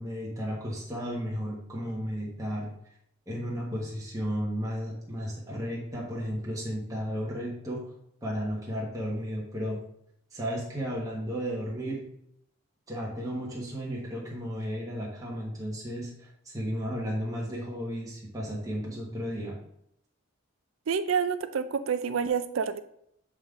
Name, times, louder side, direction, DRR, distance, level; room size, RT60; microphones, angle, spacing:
voice 1, 0.0-2.7 3.3-7.8 8.2-9.8 10.3-12.0 12.9-19.5, equal, 15° right, -5 dB, 1.2 m, -34 dB
voice 2, 20.9-22.8, right 6 dB, 70° right, 11 dB, 0.4 m, -28 dB
7.3 x 3.6 x 3.7 m, 0.75 s
head